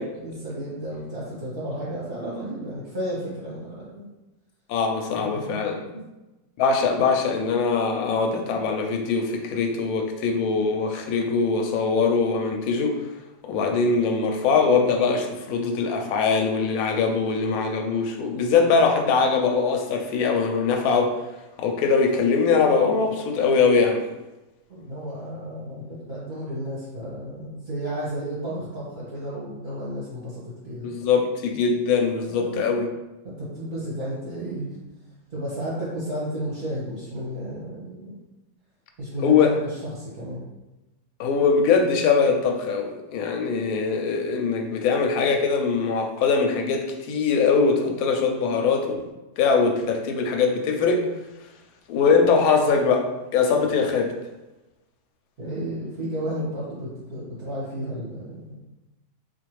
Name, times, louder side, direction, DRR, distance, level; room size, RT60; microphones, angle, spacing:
voice 1, 0.0-4.1 5.2-6.0 24.7-30.9 32.4-32.7 33.2-34.8 35.3-38.1 39.0-40.4 55.4-58.5, right 1 dB, 40° right, -7 dB, 0.8 m, -33 dB
voice 2, 4.7-5.8 6.6-13.0 13.4-21.1 21.6-24.0 30.8-32.9 39.2-39.5 41.2-49.0 49.4-51.0 51.9-53.0 53.3-54.1, left 5 dB, 70° left, 3 dB, 1.0 m, -22 dB
3.9 x 2.5 x 3.1 m, 1.0 s
omnidirectional pair, 1.7 m